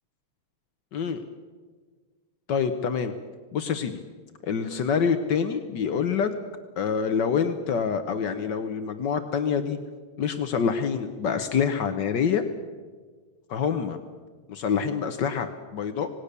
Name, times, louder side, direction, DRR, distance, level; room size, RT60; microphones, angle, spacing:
voice 1, 0.9-1.2 2.5-3.1 3.5-4.0 4.4-6.3 6.8-9.8 10.2-12.4 13.5-14.0 14.5-16.1, left 6 dB, 75° left, 8 dB, 1.0 m, -26 dB
26.5 x 19.0 x 6.8 m, 1.5 s
omnidirectional pair, 3.3 m